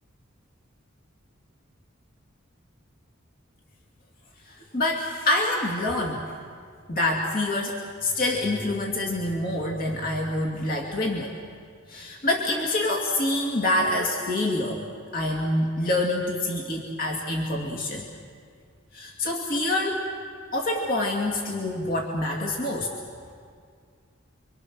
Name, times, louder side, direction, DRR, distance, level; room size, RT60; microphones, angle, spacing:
voice 1, 4.5-6.3 6.9-11.3 11.9-14.9 15.1-18.1 18.9-20.1 20.5-22.9, left 1 dB, 45° left, -1 dB, 2.4 m, -26 dB
30.0 x 24.5 x 6.3 m, 2.1 s
head